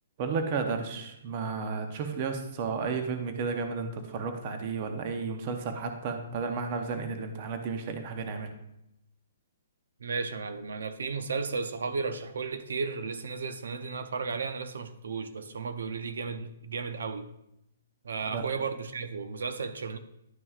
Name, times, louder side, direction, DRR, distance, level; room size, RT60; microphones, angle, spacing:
voice 1, 0.2-8.5 18.3-18.4, right 5 dB, 25° right, 6 dB, 0.6 m, -33 dB
voice 2, 10.0-17.3 18.0-20.0, right 4 dB, 80° right, 10 dB, 0.6 m, -34 dB
11.0 x 5.8 x 2.4 m, 0.83 s
hypercardioid pair, 175°, 0 cm